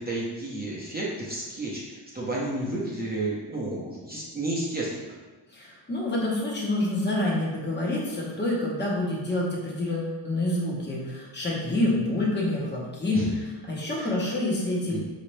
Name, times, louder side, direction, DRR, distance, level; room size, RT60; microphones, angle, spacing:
voice 1, 0.0-5.2 13.1-13.3 13.9-14.1 14.9-15.0, right 2 dB, 20° right, -6 dB, 0.7 m, -31 dB
voice 2, 5.5-13.2 13.7-15.0, left 1 dB, 20° left, -4 dB, 0.9 m, -27 dB
4.9 x 2.9 x 3.2 m, 1.2 s
wide cardioid pair, 125°, 49 cm